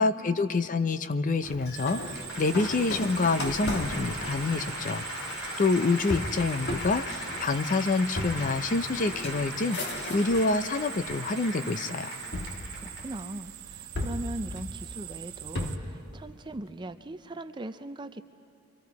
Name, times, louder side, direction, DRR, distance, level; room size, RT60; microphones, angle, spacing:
voice 1, 0.0-12.2, left 3 dB, 35° left, 11 dB, 0.5 m, -27 dB
sound 1, 1.4-10.6 11.0-11.6 12.3-13.4 13.9-16.0, left 1 dB, 50° left, 1.6 m, -37 dB
Applause, 1.7-13.2, left 1 dB, 70° left, 3.5 m, -39 dB
sound 2, 1.7-15.8, right 13 dB, 70° right, 0.7 m, -43 dB
voice 2, 12.7-18.2, right 2 dB, 20° right, 10 dB, 0.5 m, -39 dB
28.5 x 24.0 x 4.7 m, 2.5 s
head